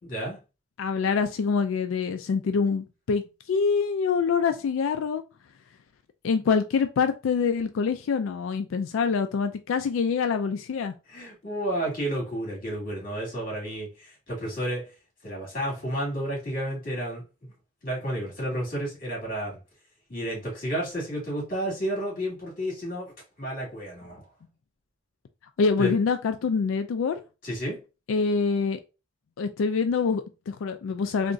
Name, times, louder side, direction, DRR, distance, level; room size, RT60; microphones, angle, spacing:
voice 1, 0.0-0.4 11.1-14.9 15.2-17.2 17.8-19.6 20.1-23.1 23.4-24.2 25.8-26.0 27.4-27.8, right 1 dB, 45° left, 2.1 m, -31 dB
voice 2, 0.8-3.2 3.5-5.2 6.2-10.9 25.6-27.2 28.1-28.8 29.4-31.3, left 5 dB, 75° left, 0.3 m, -25 dB
3.6 x 2.9 x 2.5 m
head